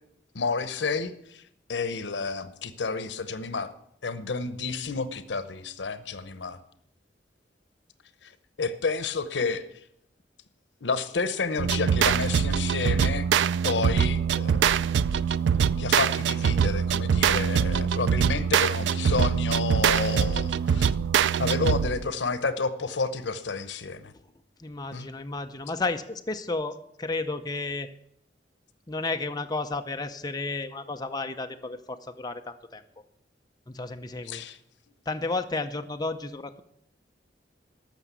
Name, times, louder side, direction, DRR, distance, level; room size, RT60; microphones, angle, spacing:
voice 1, 0.3-1.4 1.7-3.7 4.0-6.6 8.2-8.3 8.6-9.7 10.8-13.3 13.6-15.2 15.8-20.9 21.4-24.1 24.9-25.1 34.2-34.6, left 4 dB, 85° left, 13 dB, 0.9 m, -30 dB
sound 1, 11.6-22.1, right 7 dB, 80° right, 0.4 m, -24 dB
voice 2, 24.6-27.9 28.9-32.8 33.7-34.4 35.1-36.6, left 3 dB, 25° left, 6 dB, 0.7 m, -32 dB
13.5 x 6.1 x 8.2 m, 0.74 s
head